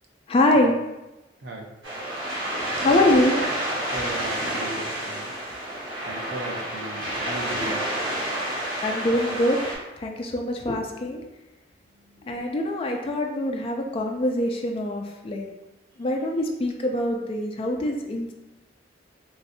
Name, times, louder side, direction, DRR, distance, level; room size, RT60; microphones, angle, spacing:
voice 1, 0.3-0.7 2.8-3.4 8.8-9.7 10.0-11.2 12.2-15.5 16.0-18.3, left 1 dB, 30° left, 1 dB, 0.3 m, -24 dB
sound 1, 1.8-9.8, right 1 dB, 80° right, 1.3 m, -29 dB
voice 2, 3.9-5.7 6.0-7.9 11.8-12.3 15.4-15.7, right 1 dB, 60° right, 0 dB, 0.6 m, -38 dB
3.1 x 2.6 x 2.6 m, 0.99 s
head